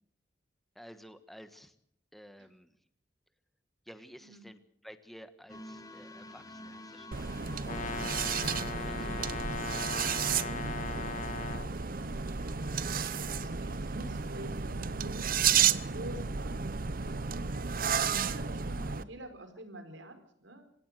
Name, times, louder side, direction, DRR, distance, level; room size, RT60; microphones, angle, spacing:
voice 1, 0.7-1.7 2.1-2.7 3.9-7.8 8.7-9.4 15.5-16.0, equal, ahead, 10 dB, 1.3 m, -53 dB
sound 1, 5.5-14.2, left 1 dB, 20° left, 1.6 m, -51 dB
sound 2, 7.1-19.0, right 7 dB, 50° right, 0.8 m, -32 dB
Brass instrument, 7.6-11.7, left 5 dB, 40° left, 1.6 m, -38 dB
voice 2, 13.3-17.7 18.0-20.7, equal, 85° right, 8 dB, 4.4 m, -48 dB
26.0 x 17.0 x 6.6 m, 0.66 s
head